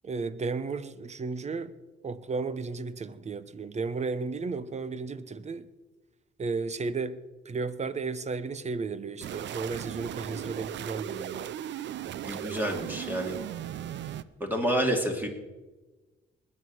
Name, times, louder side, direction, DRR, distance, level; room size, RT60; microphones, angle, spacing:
voice 1, 0.0-1.7 2.0-5.7 6.4-11.5, right 4 dB, 35° right, 1.0 m, -34 dB
sound 1, 9.2-14.2, right 11 dB, 65° right, 0.6 m, -37 dB
voice 2, 12.2-13.4 14.4-15.3, right 1 dB, 10° right, 2.9 m, -28 dB
20.5 x 7.6 x 6.4 m
cardioid pair, 90°, 20 cm